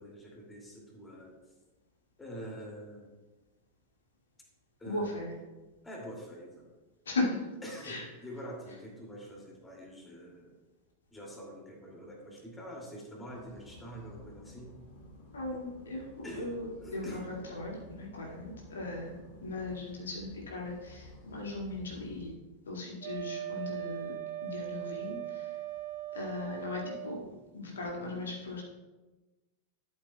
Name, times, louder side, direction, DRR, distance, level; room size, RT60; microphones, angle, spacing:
voice 1, 0.0-1.4 2.2-3.1 4.8-5.2 5.8-6.7 7.6-10.5 11.1-14.7 16.2-16.5 16.8-17.2, equal, 15° left, -1 dB, 2.4 m, -45 dB
voice 2, 4.9-5.3 7.1-7.4 7.8-8.0 15.3-22.3 22.7-24.2 24.4-25.6 26.1-28.6, left 2 dB, 70° left, -2 dB, 2.0 m, -38 dB
sound 1, 13.3-22.3, left 1 dB, 45° left, 2.1 m, -53 dB
Wind instrument woodwind instrument, 23.0-27.3, right 12 dB, 45° right, 0.7 m, -39 dB
12.5 x 7.9 x 2.2 m, 1.2 s
figure-of-eight pair, 90°, 0 cm